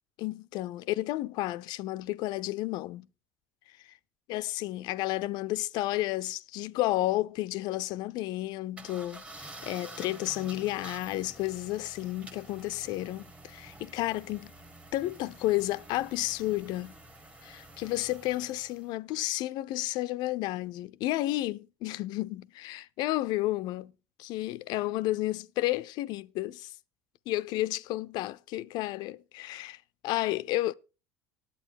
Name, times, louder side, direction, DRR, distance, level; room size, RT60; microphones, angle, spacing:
voice 1, 0.2-3.1 4.3-14.5 14.9-16.9 17.4-23.9 24.2-26.7 27.3-30.7, left 17 dB, 60° left, 0.5 m, -32 dB
sound 1, 8.8-18.9, right 2 dB, 15° right, 1.2 m, -49 dB
9.2 x 8.5 x 5.9 m
supercardioid pair, 115°, 8 cm